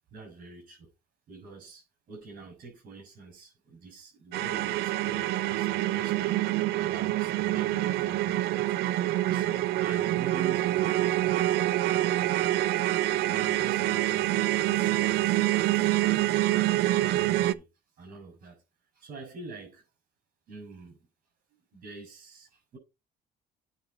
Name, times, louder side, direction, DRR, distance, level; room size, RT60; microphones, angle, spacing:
voice 1, 0.1-0.9 1.3-8.8 9.2-11.5 12.1-12.7 13.3-15.4 15.7-16.3 17.0-17.7 18.0-18.6 18.9-19.8 20.5-21.0 21.7-22.8, right 3 dB, 55° right, 5.9 m, -46 dB
sound 1, 4.3-17.5, right 15 dB, 80° right, 0.6 m, -26 dB
9.2 x 4.3 x 5.2 m
cardioid pair, 110°, 17 cm